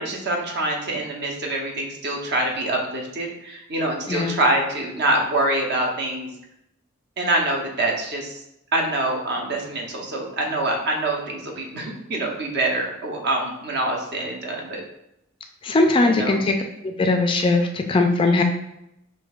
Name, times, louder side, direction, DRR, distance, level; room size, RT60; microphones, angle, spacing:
voice 1, 0.0-6.3 7.2-8.4 8.7-14.8 16.0-16.4, right 1 dB, 55° right, 0 dB, 0.8 m, -25 dB
voice 2, 15.6-16.5 16.8-18.4, left 2 dB, 25° left, 5 dB, 0.3 m, -20 dB
6.1 x 2.7 x 2.4 m, 0.82 s
head